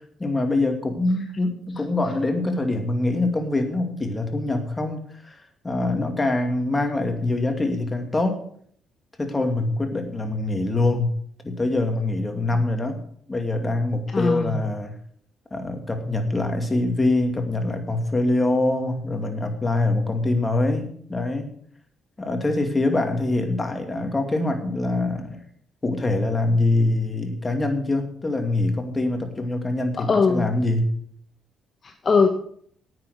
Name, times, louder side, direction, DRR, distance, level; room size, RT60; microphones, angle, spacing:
voice 1, 0.2-5.4 5.6-8.4 9.2-11.1 11.4-13.0 13.3-15.0 15.5-21.5 22.2-25.4 25.8-30.9, left 2 dB, 20° left, 5 dB, 2.4 m, -24 dB
voice 2, 14.1-14.6 30.0-30.5 31.8-32.3, left 4 dB, 40° left, 5 dB, 1.2 m, -21 dB
9.9 x 9.2 x 6.6 m, 0.62 s
cardioid pair, 90°, 0 cm